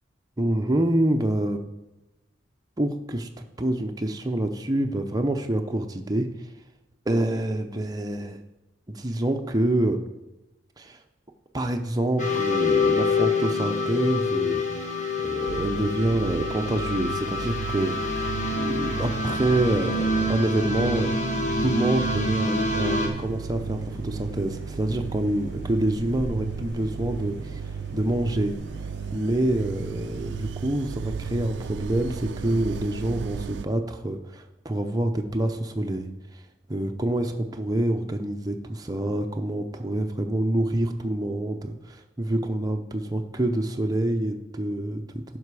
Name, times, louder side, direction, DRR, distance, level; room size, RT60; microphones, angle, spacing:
voice 1, 0.4-1.6 2.8-6.3 7.1-8.4 8.9-10.0 10.8-11.0 11.5-14.9 15.2-27.6 27.9-28.5 29.1-36.1 36.7-45.2, right 1 dB, 20° right, 4 dB, 0.6 m, -27 dB
sound 1, 12.2-23.1, left 2 dB, 40° left, 1.3 m, -26 dB
sound 2, 15.5-33.7, right 6 dB, 65° right, 0.3 m, -35 dB
sound 3, 23.1-30.5, equal, 70° left, 1.7 m, -44 dB
10.0 x 5.9 x 4.8 m, 0.99 s
head